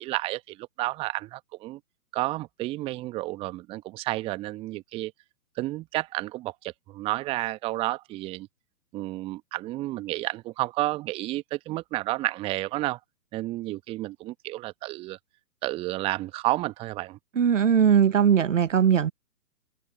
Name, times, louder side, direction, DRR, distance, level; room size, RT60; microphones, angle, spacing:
voice 1, 0.0-1.8 2.1-5.1 5.6-8.5 8.9-13.0 13.3-15.2 15.6-17.2, right 18 dB, 10° right, 1.2 m, -31 dB
voice 2, 17.4-19.1, right 8 dB, 50° right, 1.3 m, -20 dB
open air
figure-of-eight pair, 130°, 48 cm